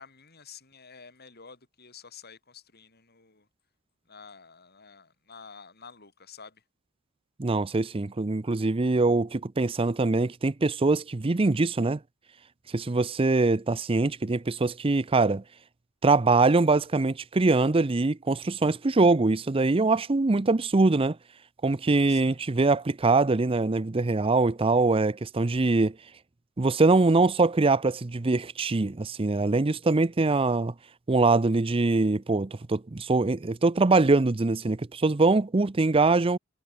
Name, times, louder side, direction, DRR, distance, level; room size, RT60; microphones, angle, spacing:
voice 1, 0.0-3.5 4.1-6.6 22.0-22.4, left 6 dB, 50° left, 5.9 m, -50 dB
voice 2, 7.4-12.0 12.7-15.4 16.0-21.2 21.6-26.0 26.6-30.7 31.1-36.4, right 3 dB, 25° right, 0.6 m, -23 dB
head